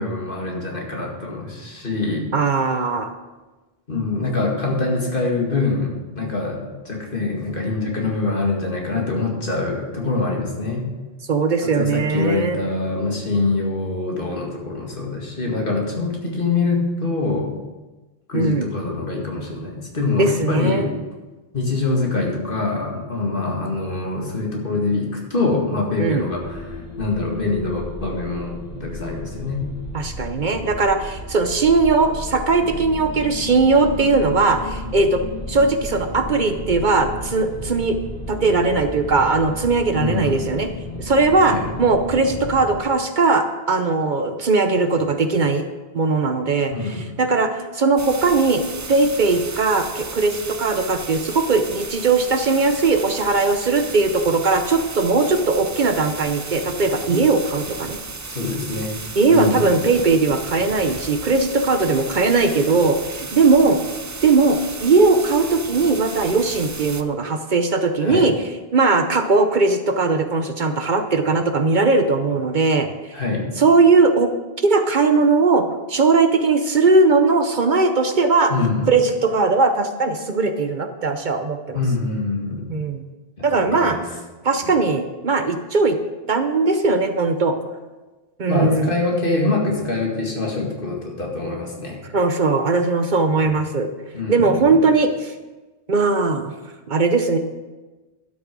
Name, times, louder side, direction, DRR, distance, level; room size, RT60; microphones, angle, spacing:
voice 1, 0.0-2.3 3.9-10.8 11.6-17.5 18.3-20.9 21.5-29.7 39.9-40.4 41.5-41.6 46.7-47.1 58.3-58.9 59.3-59.7 68.0-68.3 73.1-73.5 78.5-79.0 81.7-82.7 83.4-84.0 84.6-84.7 88.5-92.0 93.3-93.5 94.1-94.8, left 3 dB, 60° left, -1 dB, 2.2 m, -24 dB
voice 2, 2.3-3.1 11.3-12.6 18.3-18.7 20.2-20.9 26.0-26.3 29.9-35.2 35.5-38.0 38.3-40.7 41.0-45.6 45.9-48.6 48.9-58.0 59.2-63.8 64.2-68.3 68.7-72.9 73.6-74.3 74.6-78.5 78.9-81.8 82.7-83.0 83.4-84.0 84.4-86.0 86.3-87.6 88.4-88.9 92.1-93.9 94.3-95.3 95.9-96.5 96.9-97.4, right 3 dB, 55° right, 7 dB, 0.9 m, -19 dB
sound 1, 26.3-42.8, left 2 dB, 40° left, 2.0 m, -33 dB
sound 2, 48.0-67.0, right 3 dB, 30° right, 0.3 m, -34 dB
12.0 x 6.4 x 6.1 m, 1.2 s
omnidirectional pair, 1.0 m